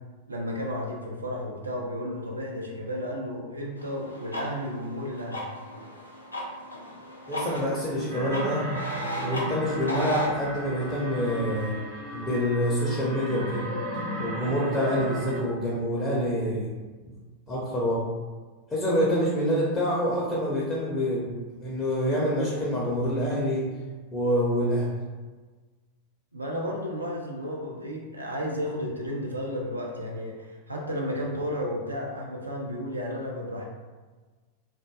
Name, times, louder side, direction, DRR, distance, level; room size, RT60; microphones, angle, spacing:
voice 1, 0.3-5.5 26.3-33.6, equal, 80° right, -1 dB, 0.4 m, -33 dB
sound 1, 3.8-10.3, equal, 80° left, 0.4 m, -36 dB
voice 2, 7.3-8.7 9.2-11.8 12.1-13.7 14.2-16.7 17.0-17.1 17.5-18.1 18.7-23.6 24.1-25.0, equal, 25° left, -6 dB, 0.6 m, -26 dB
sound 2, 8.1-15.4, equal, 60° right, 0.9 m, -35 dB
2.5 x 2.2 x 2.2 m, 1.3 s
figure-of-eight pair, 90°, 0 cm